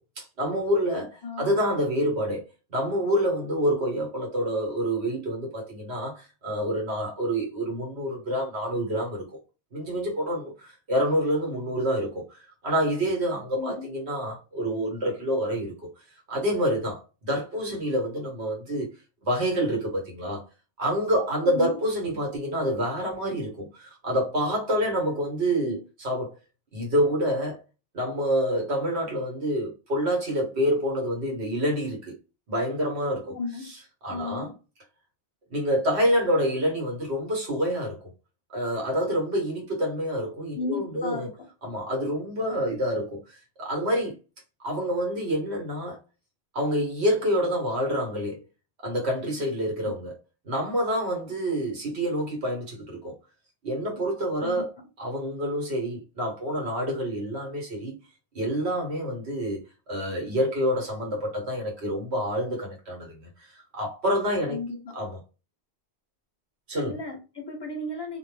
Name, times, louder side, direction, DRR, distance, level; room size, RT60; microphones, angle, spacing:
voice 1, 0.2-2.4 2.7-9.2 9.7-15.7 16.3-18.9 19.2-20.5 20.8-26.3 26.7-27.6 27.9-32.1 32.5-33.3 34.0-34.5 35.5-38.0 38.5-41.3 41.6-44.1 44.6-46.0 46.5-48.4 48.8-50.1 50.4-53.1 53.6-54.7 55.0-57.9 58.3-59.6 59.9-64.6 64.9-65.2 66.7-66.9, equal, 75° right, 1.4 m, -27 dB
voice 2, 1.2-1.6 13.6-13.9 21.4-21.8 25.4-25.8 33.3-33.7 34.1-34.6 40.5-41.5 49.8-49.9 54.4-54.7 64.5-65.0 66.9-68.2, left 3 dB, 30° left, 0.5 m, -35 dB
2.5 x 2.1 x 3.2 m
omnidirectional pair, 1.1 m